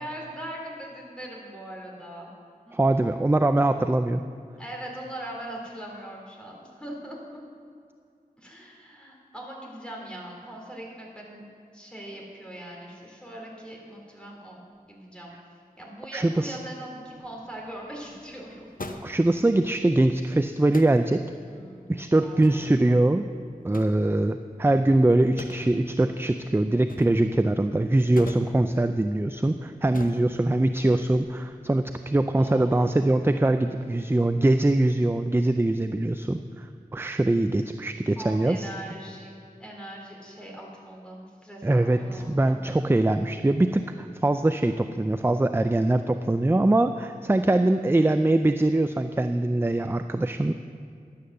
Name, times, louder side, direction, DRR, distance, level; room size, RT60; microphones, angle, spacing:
voice 1, 0.0-2.3 2.6-3.1 4.6-7.2 8.4-11.4 11.7-14.6 14.8-18.7 21.5-21.8 22.1-22.8 32.4-33.0 38.1-42.6 47.3-47.9, right 1 dB, 5° left, -2 dB, 3.2 m, -41 dB
voice 2, 2.7-4.2 16.1-16.6 19.0-21.2 21.9-23.3 23.6-38.7 41.6-50.5, right 2 dB, 15° right, 8 dB, 0.4 m, -23 dB
sound 1, 17.1-31.2, left 2 dB, 65° left, 0.8 m, -46 dB
11.0 x 8.5 x 6.7 m, 2.3 s
wide cardioid pair, 45°, 15 cm